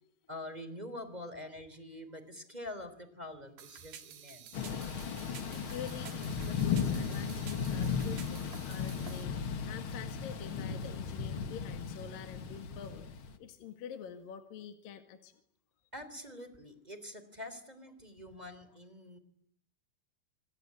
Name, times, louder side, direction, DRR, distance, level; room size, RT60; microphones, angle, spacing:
voice 1, 0.3-4.8 15.9-19.2, left 1 dB, 10° right, 11 dB, 3.1 m, -45 dB
sound 1, 3.6-9.2, right 9 dB, 65° right, 3.7 m, -51 dB
Thunder / Rain, 4.5-13.4, left 6 dB, 50° left, 1.7 m, -36 dB
voice 2, 5.5-15.3, left 8 dB, 65° left, 7 dB, 3.6 m, -47 dB
28.0 x 21.0 x 9.8 m, 0.69 s
omnidirectional pair, 4.4 m